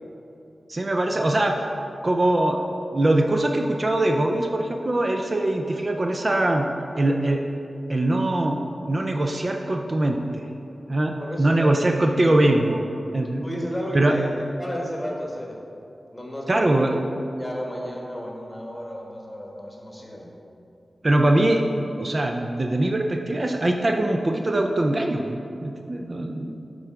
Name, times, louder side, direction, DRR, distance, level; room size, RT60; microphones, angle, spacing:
voice 1, 0.7-1.5 2.0-2.6 2.9-6.7 7.0-7.4 7.9-8.6 8.9-10.5 10.9-12.8 13.1-13.4 13.9-14.1 16.5-16.9 21.0-21.6 22.0-26.5, right 1 dB, 40° right, 3 dB, 0.4 m, -22 dB
voice 2, 11.2-11.7 13.4-14.3 14.6-15.6 16.1-17.0 17.4-20.3, equal, 15° left, -2 dB, 1.3 m, -33 dB
7.8 x 3.8 x 4.6 m, 2.7 s
cardioid pair, 55°, 0 cm